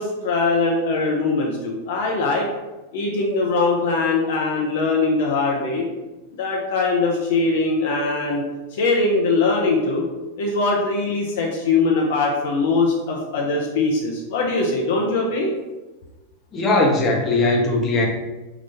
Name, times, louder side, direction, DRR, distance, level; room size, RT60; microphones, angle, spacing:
voice 1, 0.0-2.5 2.9-5.9 6.4-8.4 8.7-10.0 10.4-15.5, left 3 dB, 55° left, -1 dB, 0.6 m, -21 dB
voice 2, 16.5-18.1, left 2 dB, 25° left, 0 dB, 0.8 m, -19 dB
3.8 x 2.4 x 4.2 m, 1.1 s
figure-of-eight pair, 90°, 0 cm